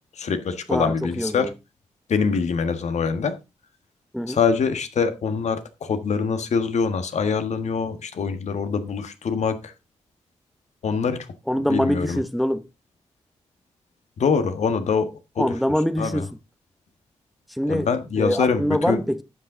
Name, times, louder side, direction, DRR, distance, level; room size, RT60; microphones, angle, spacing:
voice 1, 0.2-1.5 2.1-3.3 4.3-9.6 10.8-11.2 11.6-12.2 14.2-15.5 16.0-16.2 17.7-19.0, left 5 dB, 70° left, 1.6 m, -24 dB
voice 2, 0.7-1.5 4.1-4.4 11.5-12.6 15.4-16.3 17.5-17.9 18.2-19.2, equal, ahead, 0.9 m, -24 dB
12.0 x 8.0 x 3.8 m
supercardioid pair, 40°, 12 cm